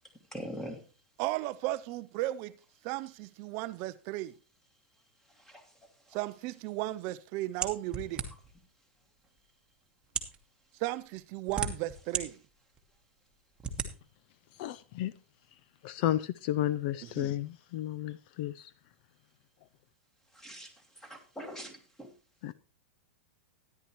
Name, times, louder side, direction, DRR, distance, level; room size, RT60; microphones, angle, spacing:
voice 1, 0.3-0.8 5.4-5.6 20.3-20.7 21.0-22.1, equal, 5° left, 1.9 m, -42 dB
voice 2, 1.2-2.5 2.8-4.3 6.1-8.2 10.8-12.3 17.2-17.3, right 17 dB, 40° right, 0.4 m, -35 dB
sound 1, 7.6-8.6 9.4-9.5 10.0-10.4 11.2-12.2 12.7-12.8 13.6-13.9, right 5 dB, 15° right, 1.2 m, -34 dB
voice 3, 14.6-15.1 15.8-18.7 22.4-22.5, left 13 dB, 50° left, 0.4 m, -32 dB
13.0 x 10.0 x 3.0 m
hypercardioid pair, 140°, 7 cm